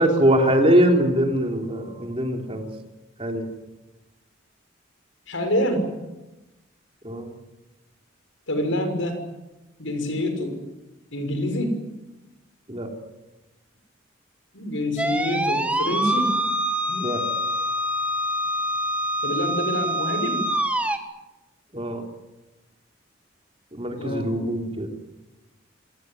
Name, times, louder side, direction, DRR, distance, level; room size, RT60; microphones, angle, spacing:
voice 1, 0.0-2.7 3.2-3.5 7.0-7.3 12.7-12.9 16.9-17.2 21.7-22.0 23.7-25.2, right 1 dB, 30° right, 3 dB, 3.4 m, -22 dB
voice 2, 5.3-5.9 8.5-9.2 9.8-10.6 11.1-11.8 14.5-16.4 19.2-20.5 24.0-24.4, left 1 dB, 80° left, 6 dB, 6.3 m, -26 dB
sound 1, 15.0-21.0, equal, 5° right, 1.7 m, -25 dB
27.5 x 18.5 x 9.4 m, 1.1 s
head